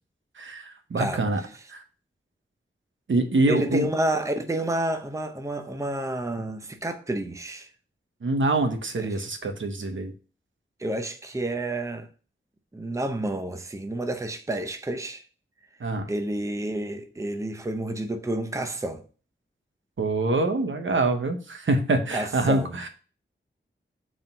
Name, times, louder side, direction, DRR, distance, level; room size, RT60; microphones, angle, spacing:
voice 1, 0.4-1.4 1.7-1.8 3.1-3.9 8.2-10.1 15.8-16.1 20.0-22.9, right 2 dB, 65° right, 1.0 m, -25 dB
voice 2, 3.5-7.7 9.0-9.1 10.8-12.1 12.7-15.2 16.1-19.0 22.1-22.7, right 1 dB, 15° right, 0.7 m, -29 dB
4.8 x 3.8 x 5.3 m
wide cardioid pair, 95°, 21 cm